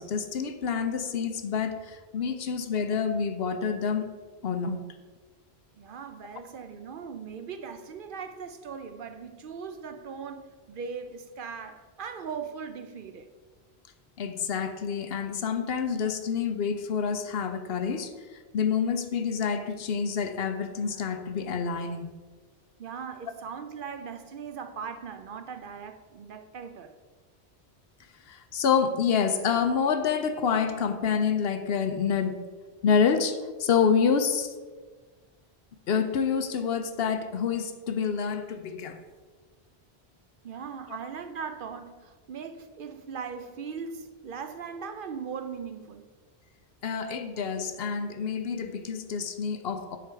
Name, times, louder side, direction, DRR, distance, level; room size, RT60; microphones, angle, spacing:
voice 1, 0.0-4.1 4.4-4.8 14.2-22.1 28.3-32.4 32.8-34.5 35.9-39.0 46.8-50.0, left 6 dB, 70° left, 0.8 m, -27 dB
voice 2, 5.8-13.3 22.8-26.9 40.4-46.1 47.3-47.4, right 6 dB, 60° right, 0.7 m, -39 dB
9.6 x 3.8 x 4.6 m
omnidirectional pair, 1.1 m